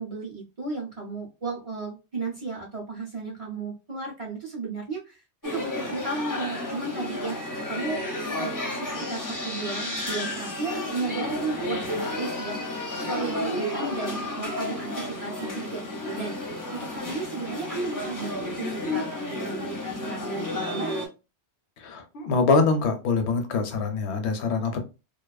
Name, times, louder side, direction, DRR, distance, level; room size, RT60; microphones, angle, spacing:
voice 1, 0.0-8.0 8.3-12.6 13.0-20.9, right 3 dB, 40° right, -2 dB, 0.5 m, -34 dB
sound 1, 5.4-21.1, left 1 dB, 25° left, 0.5 m, -32 dB
voice 2, 21.8-24.8, left 4 dB, 75° left, 7 dB, 0.9 m, -24 dB
2.6 x 2.3 x 2.2 m, 0.29 s
omnidirectional pair, 1.2 m